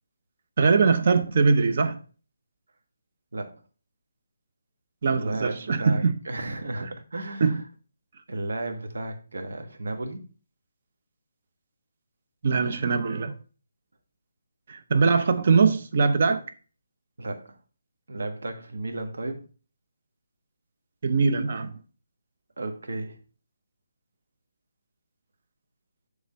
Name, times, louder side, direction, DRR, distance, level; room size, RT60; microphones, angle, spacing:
voice 1, 0.6-2.0 5.0-6.1 7.4-7.6 12.4-13.3 14.7-16.4 21.0-21.7, right 4 dB, 40° right, 0.7 m, -22 dB
voice 2, 5.1-7.6 8.3-10.2 17.2-17.6 18.1-19.5 22.6-23.2, right 2 dB, 75° right, 1.4 m, -33 dB
7.1 x 3.4 x 5.3 m
hypercardioid pair, 175°, 0 cm